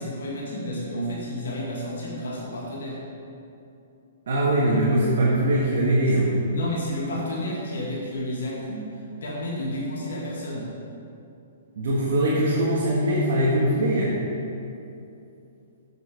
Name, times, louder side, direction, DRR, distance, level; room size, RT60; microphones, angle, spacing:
voice 1, 0.0-3.0 6.4-10.7, equal, 75° left, -4 dB, 1.8 m, -31 dB
voice 2, 4.3-6.4 11.8-14.1, right 1 dB, 65° right, -5 dB, 1.6 m, -21 dB
7.8 x 6.8 x 5.0 m, 2.7 s
hypercardioid pair, 140°, 0 cm